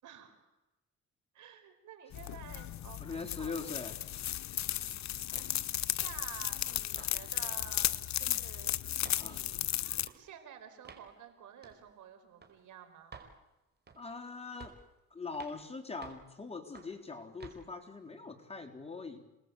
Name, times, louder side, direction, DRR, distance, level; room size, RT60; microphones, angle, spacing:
voice 1, 0.0-0.5 1.3-3.7 4.6-5.1 5.6-7.9 8.2-9.7 10.1-13.1, right 9 dB, 75° right, 7 dB, 4.7 m, -52 dB
sound 1, 2.1-10.1, left 12 dB, 65° left, 1.0 m, -35 dB
voice 2, 3.0-4.0 7.0-7.1 8.2-8.4 9.2-9.4 14.0-14.7 15.1-19.3, left 4 dB, 20° left, 4 dB, 3.8 m, -42 dB
sound 2, 5.3-5.6 6.0-6.2 6.7-7.1 7.4-7.6 7.9-8.5 9.0-9.2 10.0-10.2 10.8-11.1 11.6-11.8 12.4-12.5 13.1-13.3 13.9-14.2 14.6-14.9 15.3-15.6 16.0-16.3 16.8-17.0 17.4-17.6, right 5 dB, 35° right, 4.9 m, -52 dB
28.5 x 19.5 x 8.3 m, 1.0 s
cardioid pair, 90°, 30 cm